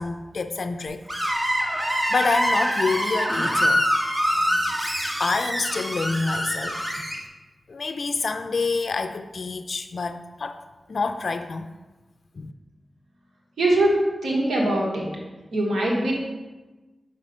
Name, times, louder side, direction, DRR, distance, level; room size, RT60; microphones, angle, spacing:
voice 1, 0.0-1.4 2.1-3.8 5.2-6.8 7.7-10.6 10.9-11.7 12.4-12.5, left 4 dB, 65° left, 8 dB, 0.4 m, -27 dB
Screech, 1.1-7.2, equal, 25° right, 1.5 m, -24 dB
voice 2, 13.6-15.0 15.5-16.1, right 1 dB, 85° right, -3 dB, 1.4 m, -22 dB
5.2 x 5.1 x 5.4 m, 1.2 s
cardioid pair, 50°, 0 cm